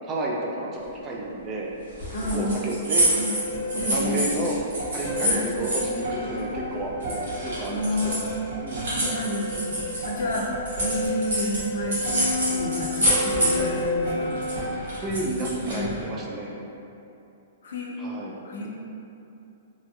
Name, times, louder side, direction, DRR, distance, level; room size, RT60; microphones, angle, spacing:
voice 1, 0.1-1.7 2.3-3.1 3.7-4.6 4.9-6.9 7.4-8.2 8.5-8.9 15.0-16.5 18.0-18.3, right 2 dB, 20° right, -3 dB, 0.3 m, -31 dB
sound 1, 2.0-6.7 7.0-11.6 11.9-13.8 14.1-16.0, right 1 dB, 85° right, 1.2 m, -27 dB
voice 2, 2.1-2.6 3.1-3.3 3.7-4.2 5.2-5.5 7.7-8.5 8.9-9.7 10.0-14.4 15.7-16.0 17.6-18.0 18.4-18.7, left 1 dB, 75° left, -2 dB, 0.5 m, -30 dB
sound 2, 3.3-14.7, left 1 dB, 60° right, 1.4 m, -31 dB
2.9 x 2.3 x 2.8 m, 2.8 s
hypercardioid pair, 165°, 0 cm